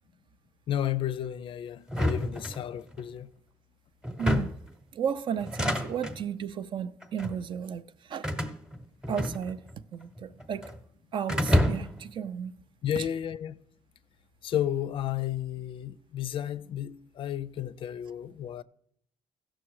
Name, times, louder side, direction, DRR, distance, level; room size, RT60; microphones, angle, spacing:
voice 1, 0.7-3.3 12.8-13.6 14.4-18.6, left 10 dB, 50° left, 0.4 m, -32 dB
sound 1, 1.9-3.0 4.0-4.7 5.4-6.2 7.0-7.4 8.2-9.8 10.0-10.8 11.3-12.1, left 1 dB, 5° right, 0.9 m, -29 dB
voice 2, 4.2-4.6 4.9-8.3 9.1-9.6 9.9-10.7 11.1-12.5 13.0-13.1, right 8 dB, 45° right, 0.5 m, -34 dB
16.0 x 6.3 x 4.7 m
cardioid pair, 140°, 11 cm